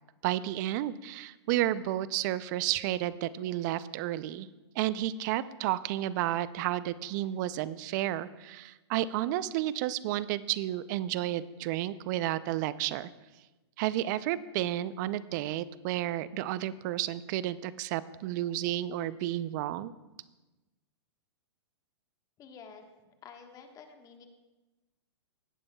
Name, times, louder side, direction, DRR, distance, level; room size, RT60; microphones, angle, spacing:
voice 1, 0.2-4.5 4.8-13.1 13.8-19.9, right 13 dB, 45° right, 16 dB, 0.5 m, -31 dB
voice 2, 22.4-22.8 23.2-24.3, left 6 dB, 25° left, 5 dB, 1.3 m, -50 dB
17.5 x 9.7 x 2.3 m, 1.1 s
hypercardioid pair, 120°, 14 cm